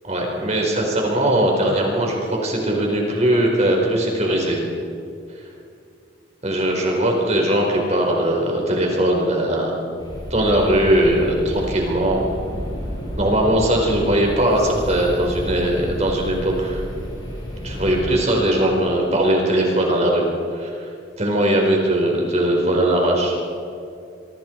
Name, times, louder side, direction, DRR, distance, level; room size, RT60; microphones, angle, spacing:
voice 1, 0.0-4.6 6.4-9.8 10.3-12.3 13.2-16.8 17.6-20.2 20.5-20.9 21.2-23.4, right 1 dB, 35° right, 0 dB, 4.6 m, -20 dB
sound 1, 10.0-18.1, equal, 25° left, 7.2 m, -31 dB
27.0 x 25.0 x 4.7 m, 2.5 s
head